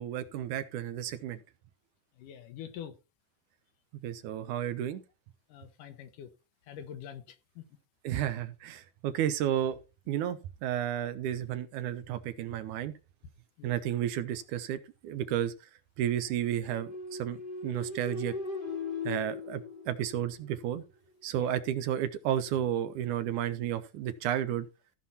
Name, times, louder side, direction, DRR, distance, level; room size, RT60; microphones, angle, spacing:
voice 1, 0.0-1.4 4.0-5.0 8.0-9.8 10.1-12.9 13.6-15.5 16.0-18.4 19.1-19.6 19.9-20.8 21.2-24.7, right 10 dB, 75° right, 2.2 m, -32 dB
voice 2, 2.2-3.0 5.5-6.3 6.7-7.6 13.6-13.7 21.4-21.5, left 9 dB, 80° left, 2.6 m, -45 dB
sound 1, 16.7-20.5, left 4 dB, 65° left, 0.5 m, -38 dB
15.0 x 5.6 x 4.2 m
omnidirectional pair, 3.7 m